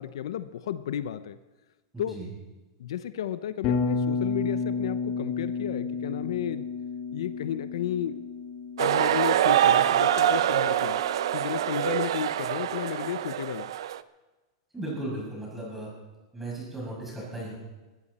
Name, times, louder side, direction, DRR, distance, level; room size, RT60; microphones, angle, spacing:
voice 1, 0.0-1.4 2.0-2.2 2.8-6.6 7.1-8.2 8.8-11.0 11.3-13.7, left 10 dB, 80° left, 12 dB, 0.8 m, -33 dB
voice 2, 1.9-2.3 14.7-15.9 16.3-17.6, right 1 dB, 5° right, -4 dB, 7.0 m, -36 dB
Bass guitar, 3.6-11.7, left 4 dB, 40° left, 2.5 m, -32 dB
sound 1, 8.8-14.0, right 11 dB, 75° right, 0.6 m, -24 dB
21.0 x 14.5 x 4.3 m, 1.2 s
supercardioid pair, 155°, 3 cm